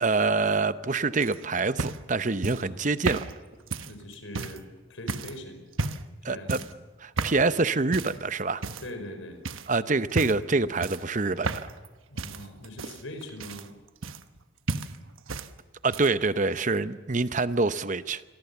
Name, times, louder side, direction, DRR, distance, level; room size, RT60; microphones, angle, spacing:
voice 1, 0.0-3.2 6.2-6.6 7.0-8.6 9.7-11.6 15.8-18.2, right 3 dB, 35° right, 13 dB, 0.8 m, -26 dB
sound 1, 1.2-4.6 5.1-5.4 5.7-6.1 6.5-6.8 7.2-7.5 7.9-8.2 8.6-9.1 9.4-9.7 10.1-10.5 10.8-11.9 12.2-14.4 14.7-15.5 15.8-16.3 17.2-17.3, right 3 dB, 80° right, 1.2 m, -33 dB
voice 2, 3.8-5.6 6.3-6.6 8.8-9.4 12.1-13.7, left 1 dB, 75° left, 6 dB, 5.3 m, -41 dB
28.5 x 22.5 x 7.1 m, 1.4 s
head